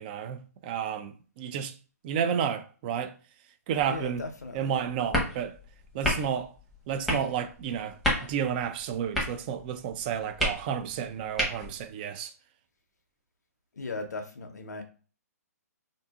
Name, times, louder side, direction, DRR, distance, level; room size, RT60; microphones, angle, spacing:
voice 1, 0.0-1.7 2.0-3.1 3.7-4.2 4.5-5.6 5.9-6.5 6.9-8.0 8.3-12.3, right 8 dB, 35° right, 0.4 m, -31 dB
sound 1, 3.8-11.9, equal, ahead, 0.9 m, -34 dB
voice 2, 3.9-4.7 13.8-14.8, left 3 dB, 90° left, 0.6 m, -37 dB
2.6 x 2.6 x 2.3 m
hypercardioid pair, 140°, 9 cm